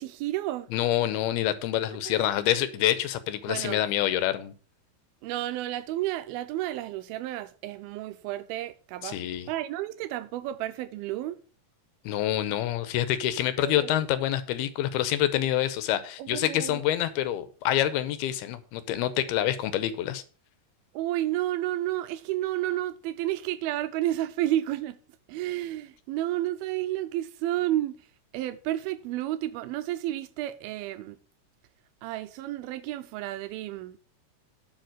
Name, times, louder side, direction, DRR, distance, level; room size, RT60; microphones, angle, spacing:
voice 1, 0.0-0.7 2.0-2.2 3.5-3.8 5.2-9.2 9.5-11.4 13.6-14.0 16.2-16.8 20.9-25.0 25.3-27.9 28.3-31.2 32.0-34.0, right 14 dB, 80° right, 2.4 m, -31 dB
voice 2, 0.7-4.5 9.0-9.5 12.1-20.2, left 12 dB, 85° left, 2.7 m, -27 dB
10.5 x 5.1 x 6.0 m
omnidirectional pair, 4.5 m